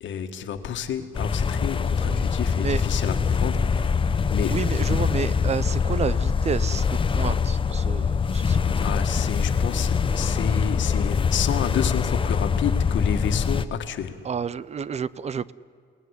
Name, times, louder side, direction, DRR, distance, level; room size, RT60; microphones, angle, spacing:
voice 1, 0.0-3.9 4.3-4.8 8.8-14.2, left 8 dB, 70° left, 7 dB, 1.8 m, -30 dB
sound 1, 1.1-13.7, left 6 dB, 25° left, 0.7 m, -23 dB
voice 2, 4.5-8.6 9.0-9.1 14.3-15.5, right 6 dB, 35° right, 19 dB, 0.6 m, -30 dB
29.0 x 18.0 x 9.9 m, 2.3 s
cardioid pair, 160°, 20 cm